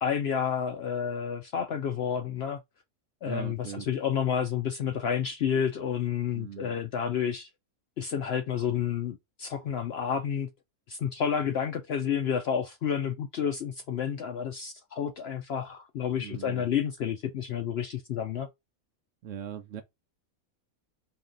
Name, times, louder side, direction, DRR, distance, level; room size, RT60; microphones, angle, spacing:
voice 1, 0.0-2.6 3.2-7.5 8.0-10.5 10.9-18.5, left 8 dB, 65° left, 0.6 m, -30 dB
voice 2, 3.2-3.9 6.3-6.7 16.2-16.6 19.2-19.8, right 9 dB, 65° right, 1.0 m, -40 dB
4.3 x 2.9 x 3.8 m
omnidirectional pair, 1.5 m